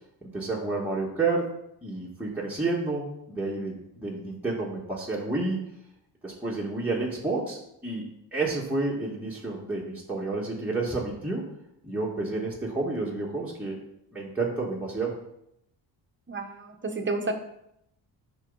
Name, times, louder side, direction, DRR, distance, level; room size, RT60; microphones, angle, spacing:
voice 1, 0.2-1.5 1.8-5.6 6.2-7.6 7.8-8.1 8.3-11.4 11.8-13.8 14.1-15.2, right 3 dB, 5° right, -5 dB, 2.0 m, -30 dB
voice 2, 16.3-17.3, right 3 dB, 25° right, 4 dB, 1.5 m, -31 dB
10.5 x 5.9 x 4.1 m, 0.78 s
cardioid pair, 100°, 43 cm